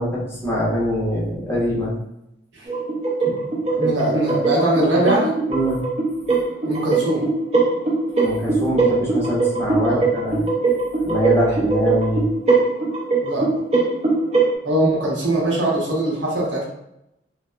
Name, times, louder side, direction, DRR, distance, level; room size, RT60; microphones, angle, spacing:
voice 1, 0.0-2.0 5.5-5.8 8.2-10.5 11.0-12.3, equal, 15° left, -7 dB, 0.8 m, -23 dB
sound 1, 2.7-14.5, right 3 dB, 35° right, 0.5 m, -21 dB
voice 2, 3.3-5.4 6.6-7.3 9.9-10.0 13.2-13.5 14.6-16.6, right 1 dB, 75° right, -4 dB, 0.8 m, -21 dB
2.9 x 2.0 x 2.2 m, 0.82 s
head